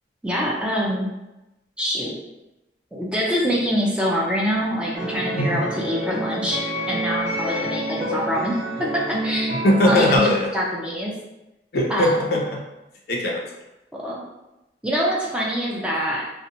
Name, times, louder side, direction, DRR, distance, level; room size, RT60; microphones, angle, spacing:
voice 1, 0.2-1.1 1.8-2.1 2.9-6.6 6.9-8.6 8.9-9.5 9.8-10.2 10.5-11.1 11.9-12.1 14.0-14.2 14.8-16.2, equal, 5° right, -4 dB, 0.4 m, -24 dB
sound 1, 4.9-10.2, right 1 dB, 60° right, 0.7 m, -28 dB
voice 2, 7.4-7.8 9.5-10.5 11.7-12.6 13.1-13.5, left 1 dB, 55° left, -1 dB, 0.5 m, -21 dB
2.8 x 2.0 x 2.5 m, 0.95 s
head